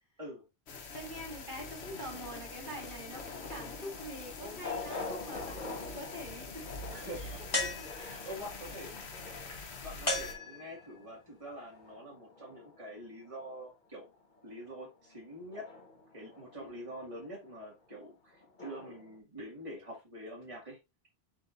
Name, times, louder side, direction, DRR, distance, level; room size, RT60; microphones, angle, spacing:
sound 1, 0.7-10.3, left 3 dB, 85° left, 1.2 m, -45 dB
voice 1, 0.9-6.8 7.1-8.3 16.5-16.9, equal, 50° right, 2.6 m, -45 dB
sound 2, 1.0-13.6 13.9-19.2, left 3 dB, 50° left, 1.5 m, -48 dB
voice 2, 6.9-7.4 7.9-9.1 9.8-14.1 14.4-15.7 16.1-20.8, equal, 30° right, 2.2 m, -45 dB
sound 3, 7.5-8.4 10.1-11.0, left 2 dB, 20° left, 1.9 m, -35 dB
7.5 x 4.8 x 2.6 m
omnidirectional pair, 1.1 m